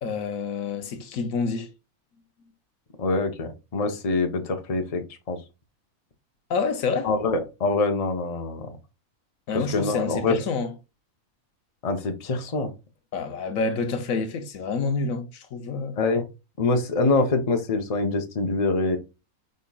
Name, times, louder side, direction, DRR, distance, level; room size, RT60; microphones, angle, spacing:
voice 1, 0.0-1.7 6.5-7.1 9.5-10.7 13.1-16.0, left 4 dB, 70° left, 1.2 m, -28 dB
voice 2, 3.0-5.4 7.0-8.7 9.5-10.4 11.8-12.7 16.0-16.3 16.6-19.0, left 3 dB, 30° left, 0.7 m, -25 dB
5.3 x 4.3 x 2.3 m
omnidirectional pair, 1.5 m